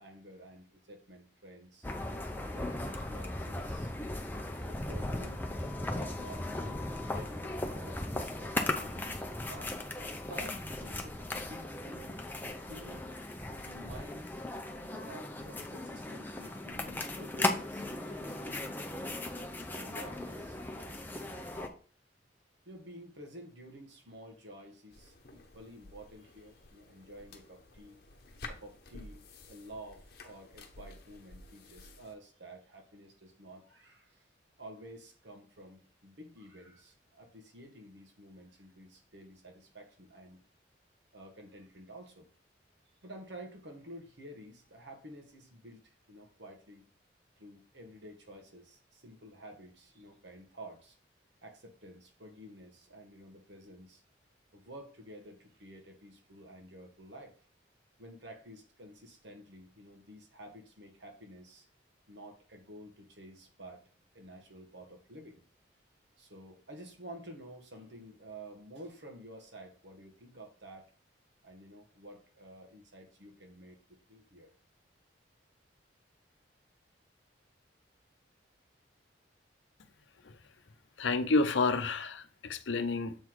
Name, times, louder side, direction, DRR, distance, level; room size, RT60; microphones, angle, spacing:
voice 1, 0.0-1.9 2.3-3.9 4.6-5.5 5.9-9.0 9.4-9.8 10.2-13.1 13.5-14.3 15.0-19.2 19.7-21.8 22.6-28.0 28.5-34.3 34.6-40.4 41.1-42.3 43.0-46.8 47.4-51.0 51.4-54.0 54.5-57.5 58.0-61.7 62.1-63.8 64.1-65.4 66.2-70.9 71.4-74.5, right 1 dB, 65° right, 1.5 m, -51 dB
sound 1, 1.8-21.7, left 1 dB, 10° left, 0.6 m, -37 dB
sound 2, 24.9-32.1, left 2 dB, 55° left, 1.0 m, -52 dB
voice 2, 81.0-83.2, left 3 dB, 80° left, 0.6 m, -29 dB
7.1 x 3.9 x 4.7 m
head